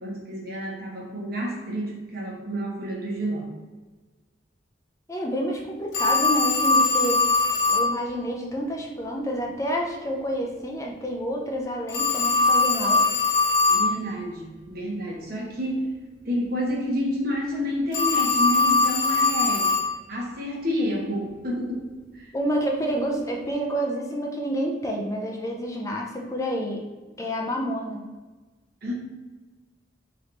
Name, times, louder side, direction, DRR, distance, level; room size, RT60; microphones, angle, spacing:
voice 1, 0.0-3.5 13.7-15.9 16.2-19.8 20.1-21.9 22.2-22.3 28.8-28.9, equal, 55° right, -2 dB, 1.0 m, -29 dB
voice 2, 5.1-7.2 7.7-13.0 22.3-26.8 27.2-28.1, equal, 15° left, 0 dB, 0.5 m, -28 dB
Telephone, 5.9-7.9 11.9-13.9 17.9-19.9, left 3 dB, 90° left, 1.0 m, -21 dB
3.4 x 3.1 x 3.8 m, 1.3 s
head